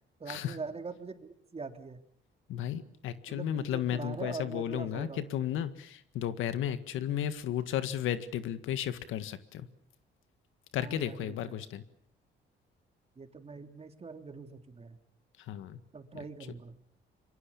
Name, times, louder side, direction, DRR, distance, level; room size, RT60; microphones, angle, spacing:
voice 1, 0.2-2.0 3.3-5.2 10.8-11.5 13.2-15.0 15.9-16.8, right 4 dB, 30° right, 6 dB, 3.2 m, -43 dB
voice 2, 2.5-9.7 10.7-11.8 15.5-15.8, left 10 dB, 85° left, 11 dB, 1.8 m, -34 dB
26.5 x 23.5 x 7.1 m, 0.65 s
cardioid pair, 90°, 20 cm